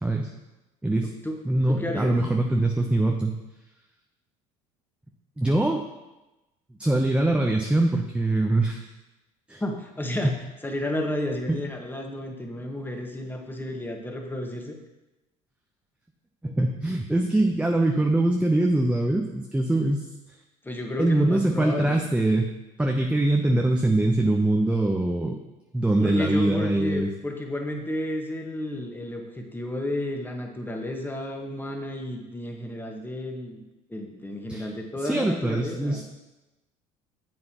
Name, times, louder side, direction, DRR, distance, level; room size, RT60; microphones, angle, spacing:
voice 1, 0.0-0.3 0.8-1.1 1.4-3.4 5.4-5.8 6.8-8.8 9.5-9.6 10.2-10.4 11.5-11.6 16.4-20.0 21.0-22.5 22.8-25.4 25.7-27.1 34.5-34.7 35.0-36.0, right 2 dB, 5° right, 2 dB, 0.8 m, -23 dB
voice 2, 1.0-1.3 1.7-2.1 9.6-10.3 10.6-14.8 20.6-22.0 26.0-33.6 33.9-36.0, left 1 dB, 10° left, 2 dB, 1.6 m, -32 dB
9.7 x 7.6 x 3.0 m, 1.0 s
hypercardioid pair, 65°, 18 cm